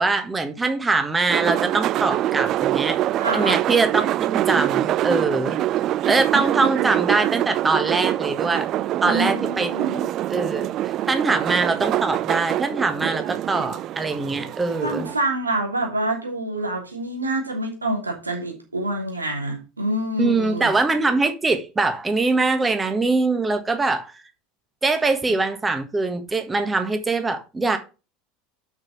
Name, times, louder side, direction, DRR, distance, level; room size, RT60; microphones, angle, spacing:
voice 1, 0.0-3.0 3.3-5.6 6.0-8.7 9.0-9.7 10.3-15.1 20.2-24.1 24.8-27.8, right 3 dB, 15° right, 1.5 m, -23 dB
sound 1, 1.3-15.1, right 13 dB, 45° right, 0.3 m, -24 dB
voice 2, 3.2-3.6 9.0-10.0 14.8-20.7, right 1 dB, 85° right, 3.0 m, -26 dB
6.2 x 6.1 x 5.8 m
figure-of-eight pair, 75°, 0 cm